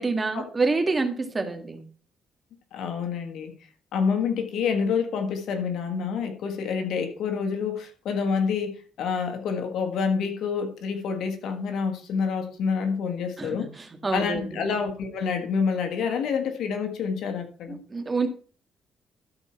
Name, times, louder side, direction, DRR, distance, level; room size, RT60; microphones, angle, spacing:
voice 1, 0.0-1.8 13.4-14.6 17.7-18.3, right 3 dB, 25° right, 1.9 m, -27 dB
voice 2, 2.7-3.5 3.9-13.7 14.1-17.8, left 6 dB, 80° left, 1.5 m, -27 dB
12.5 x 4.4 x 5.7 m
cardioid pair, 90°, 0 cm